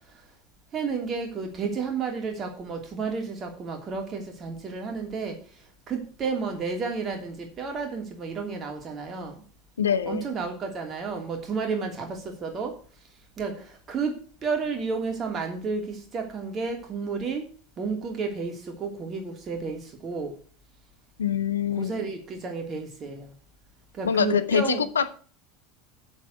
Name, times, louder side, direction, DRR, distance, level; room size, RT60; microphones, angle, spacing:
voice 1, 0.7-5.4 5.9-9.4 10.1-12.7 13.4-14.1 14.4-17.4 17.8-20.3 21.8-23.3 23.9-24.8, right 4 dB, 30° right, 3 dB, 2.9 m, -31 dB
voice 2, 9.8-10.2 21.2-22.1 24.0-25.1, left 7 dB, 75° left, 12 dB, 0.8 m, -25 dB
7.5 x 7.2 x 8.0 m, 0.42 s
figure-of-eight pair, 80°, 0 cm